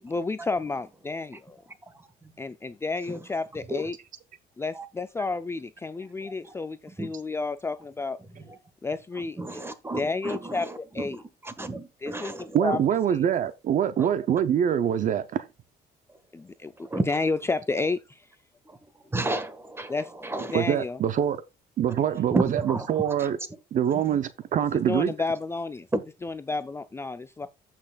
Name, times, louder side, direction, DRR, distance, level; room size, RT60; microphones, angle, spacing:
voice 1, 0.0-1.5 2.4-4.0 4.6-8.2 8.8-9.7 10.0-10.7 10.9-11.2 12.0-12.8 13.1-13.3 16.3-18.3 19.9-21.0 24.9-25.9 26.2-27.5, left 3 dB, 15° left, 0.4 m, -31 dB
voice 2, 9.4-10.7 11.4-12.6 14.0-14.1 16.9-17.0 19.1-19.9 20.2-20.6 22.3-23.0 25.9-26.0, right 2 dB, 15° right, 1.5 m, -31 dB
voice 3, 12.5-15.5 20.5-21.4 21.8-23.4 23.7-25.1, right 9 dB, 50° right, 0.6 m, -24 dB
15.0 x 6.0 x 2.4 m
cardioid pair, 110°, 17 cm